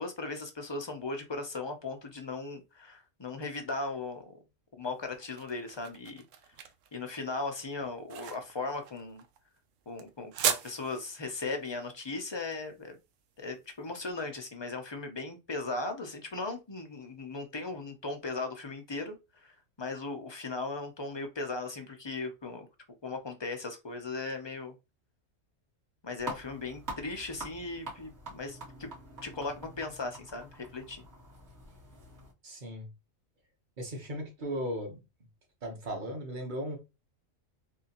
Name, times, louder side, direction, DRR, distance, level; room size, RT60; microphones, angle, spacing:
voice 1, 0.0-4.4 4.8-6.2 6.9-9.2 9.9-13.0 13.4-22.7 23.0-24.7 26.0-28.9 29.2-31.0, left 3 dB, 40° left, 0.3 m, -37 dB
sound 1, 4.9-13.9, right 9 dB, 75° right, 0.9 m, -38 dB
sound 2, 26.2-32.3, right 2 dB, 55° right, 1.9 m, -45 dB
voice 2, 32.4-32.9 33.8-35.0 35.6-36.8, equal, 40° right, 1.2 m, -36 dB
3.6 x 3.0 x 2.9 m
omnidirectional pair, 1.4 m